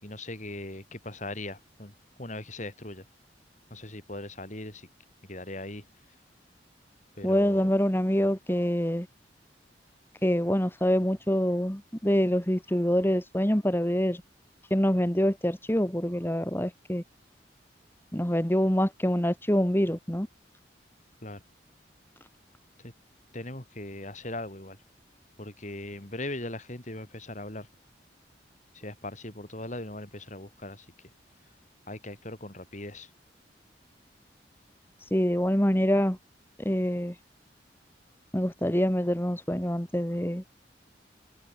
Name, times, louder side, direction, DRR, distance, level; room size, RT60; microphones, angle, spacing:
voice 1, 0.0-1.9 2.2-3.0 3.7-4.9 5.3-5.8 7.2-7.7 21.2-21.4 22.8-22.9 23.3-24.8 25.4-27.7 28.7-30.9 31.9-33.1, left 1 dB, 45° left, 6.5 m, -39 dB
voice 2, 7.2-9.1 10.2-14.2 14.7-17.0 18.1-20.3 35.1-36.2 36.6-37.1 38.3-40.4, equal, 15° left, 2.4 m, -25 dB
head